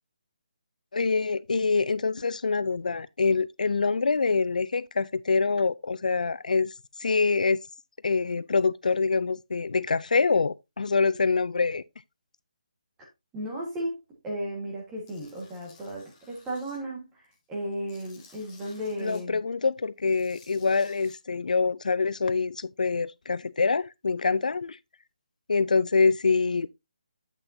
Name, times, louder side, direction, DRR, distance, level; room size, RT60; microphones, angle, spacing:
voice 1, 0.9-6.7 7.0-7.6 8.0-11.8 19.0-24.8 25.5-26.7, left 4 dB, 75° left, 0.4 m, -25 dB
voice 2, 13.3-19.4, equal, 5° right, 1.5 m, -35 dB
Tools, 15.1-16.8 17.2-19.2 20.0-21.2, left 4 dB, 15° left, 1.4 m, -56 dB
8.1 x 6.8 x 2.7 m
hypercardioid pair, 180°, 4 cm